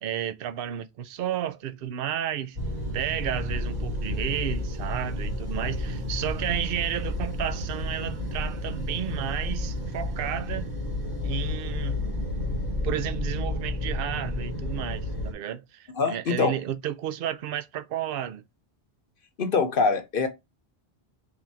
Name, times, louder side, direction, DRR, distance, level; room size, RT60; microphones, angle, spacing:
voice 1, 0.0-2.6 2.9-10.7 11.2-12.0 12.8-18.4, right 10 dB, 65° right, 0.7 m, -32 dB
sound 1, 2.5-15.3, left 1 dB, 40° right, 1.3 m, -31 dB
sound 2, 10.9-13.6, left 10 dB, 25° right, 0.8 m, -35 dB
voice 2, 16.0-16.5 19.4-20.3, left 4 dB, 60° left, 1.0 m, -24 dB
4.0 x 2.7 x 4.5 m
omnidirectional pair, 1.1 m